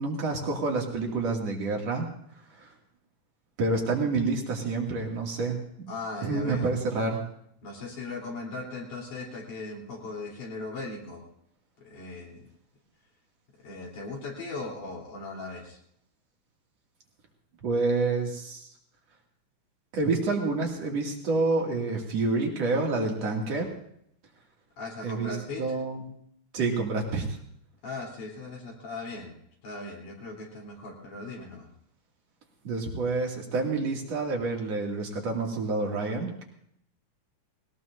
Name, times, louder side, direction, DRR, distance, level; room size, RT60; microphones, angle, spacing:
voice 1, 0.0-2.1 2.6-2.7 3.6-5.9 6.2-7.2 17.6-18.7 19.9-23.7 25.0-26.1 26.5-27.4 32.6-36.4, right 3 dB, 55° right, 0 dB, 3.6 m, -28 dB
voice 2, 5.9-6.8 7.6-11.2 11.8-12.5 13.6-15.8 24.8-25.6 27.8-29.4 29.6-31.7, left 3 dB, 85° left, -2 dB, 5.2 m, -38 dB
21.0 x 18.5 x 2.7 m, 0.69 s
omnidirectional pair, 3.5 m